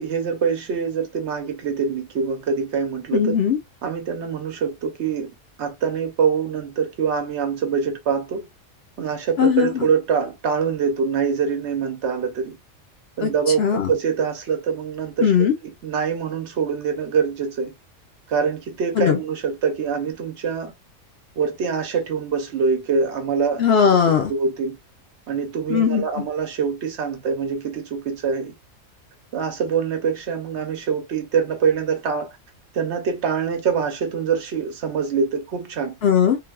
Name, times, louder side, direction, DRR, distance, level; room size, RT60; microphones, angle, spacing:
voice 1, 0.0-3.4 3.8-5.3 5.6-8.5 9.0-12.6 13.2-17.7 18.3-20.7 21.4-23.6 24.3-24.8 25.3-28.5 29.3-32.4 32.7-35.9, right 6 dB, 60° right, 0.9 m, -24 dB
voice 2, 3.1-3.6 9.4-9.9 13.2-13.3 13.6-13.9 15.2-15.5 19.0-19.2 23.6-24.3 25.7-26.0 36.0-36.4, left 7 dB, 60° left, 0.8 m, -18 dB
3.3 x 2.2 x 2.2 m
omnidirectional pair, 1.4 m